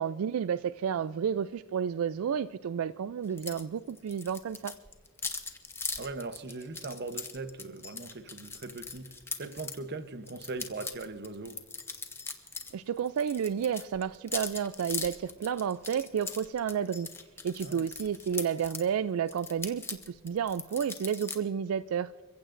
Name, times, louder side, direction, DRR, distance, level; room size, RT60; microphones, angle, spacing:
voice 1, 0.0-4.7 12.7-17.1 17.4-22.1, right 7 dB, 75° right, 0.3 m, -31 dB
sound 1, 3.4-3.6 3.9-9.8 10.3-12.7 13.0-18.9 19.3-21.4, left 4 dB, 10° left, 1.0 m, -40 dB
voice 2, 6.0-9.1 9.4-11.6 17.6-17.9, right 3 dB, 50° right, 0.8 m, -40 dB
29.5 x 15.5 x 2.6 m
head